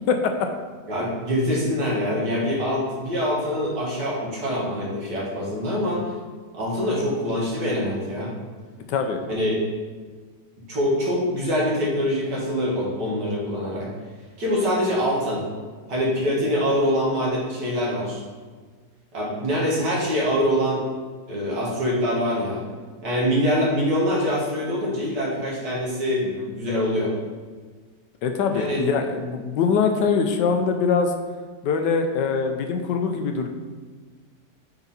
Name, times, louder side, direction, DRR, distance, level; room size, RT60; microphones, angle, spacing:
voice 1, 0.9-6.1 6.5-8.3 9.3-9.6 10.7-13.9 14.4-15.4 15.9-18.2 19.1-20.8 21.3-22.6 23.0-27.1 28.5-28.9, equal, 75° right, -5 dB, 2.3 m, -24 dB
voice 2, 8.9-9.2 26.4-26.5 28.2-31.1 31.6-33.5, left 5 dB, 85° left, 5 dB, 1.3 m, -23 dB
7.0 x 4.0 x 4.1 m, 1.4 s
omnidirectional pair, 1.8 m